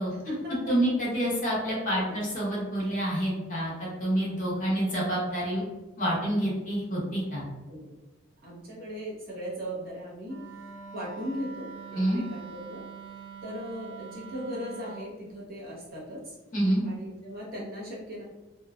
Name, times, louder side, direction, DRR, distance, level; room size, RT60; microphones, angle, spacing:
voice 1, 0.1-0.7 1.9-2.3 7.7-7.9 8.4-10.4 10.9-12.8 13.4-16.4 16.8-18.2, equal, 50° right, -5 dB, 0.8 m, -38 dB
voice 2, 0.7-5.6 6.0-7.4 11.9-12.2 16.5-16.8, right 1 dB, 40° left, -6 dB, 1.0 m, -27 dB
Wind instrument woodwind instrument, 10.2-15.1, right 6 dB, 75° right, 0.5 m, -44 dB
2.8 x 2.2 x 2.4 m, 1.1 s
head